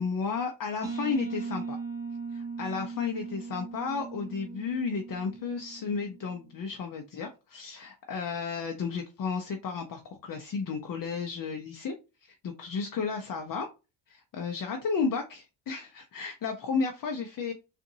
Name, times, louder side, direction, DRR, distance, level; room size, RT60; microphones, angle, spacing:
voice 1, 0.0-1.8 2.3-11.9 12.2-13.7 14.1-17.5, left 5 dB, 45° left, 4 dB, 0.7 m, -33 dB
sound 1, 0.8-6.4, right 4 dB, 5° right, 0.9 m, -39 dB
3.8 x 2.5 x 2.7 m, 0.29 s
cardioid pair, 95°, 47 cm